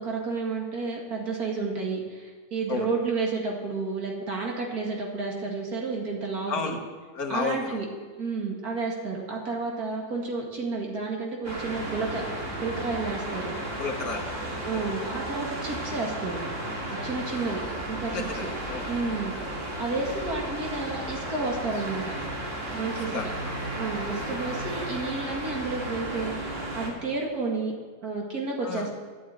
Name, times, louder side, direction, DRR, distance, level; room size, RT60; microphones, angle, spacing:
voice 1, 0.0-6.7 7.3-7.8 8.2-12.2 12.6-13.5 14.6-16.4 16.9-17.6 17.9-18.5 18.9-22.0 22.7-23.2 23.8-27.7 28.0-29.0, right 3 dB, 60° right, -1 dB, 2.6 m, -31 dB
voice 2, 6.5-6.8 7.1-7.8 13.8-14.3 14.7-14.9 17.3-17.5 18.1-18.9 23.1-23.6 28.6-28.9, left 4 dB, 60° left, 3 dB, 1.9 m, -32 dB
sound 1, 11.4-26.9, right 1 dB, 45° right, 2.7 m, -34 dB
11.0 x 8.7 x 8.9 m, 1.5 s
omnidirectional pair, 1.8 m